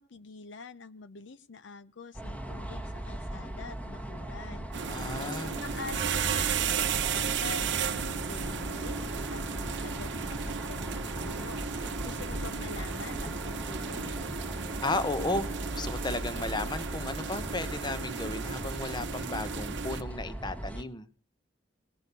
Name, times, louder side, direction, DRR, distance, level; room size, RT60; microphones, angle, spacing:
voice 1, 0.0-4.7 5.2-14.2, left 4 dB, 70° left, 14 dB, 0.7 m, -45 dB
sound 1, 2.1-20.8, right 1 dB, 5° left, 1.3 m, -38 dB
sound 2, 4.7-20.0, right 7 dB, 65° right, 0.8 m, -34 dB
voice 2, 4.9-5.5 14.8-21.1, left 2 dB, 20° left, 13 dB, 0.9 m, -34 dB
19.0 x 6.3 x 6.8 m, 0.40 s
head